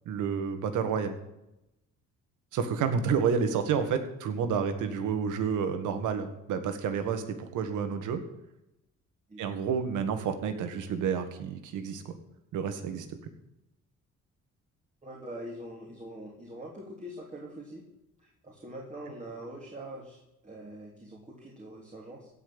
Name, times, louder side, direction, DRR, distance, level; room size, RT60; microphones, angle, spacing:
voice 1, 0.1-1.2 2.5-8.2 9.4-12.2 12.5-13.1, right 6 dB, 85° right, 8 dB, 1.9 m, -30 dB
voice 2, 15.0-17.8 18.2-22.3, right 1 dB, 25° right, -3 dB, 3.5 m, -44 dB
16.5 x 5.7 x 8.7 m, 0.88 s
cardioid pair, 90°, 30 cm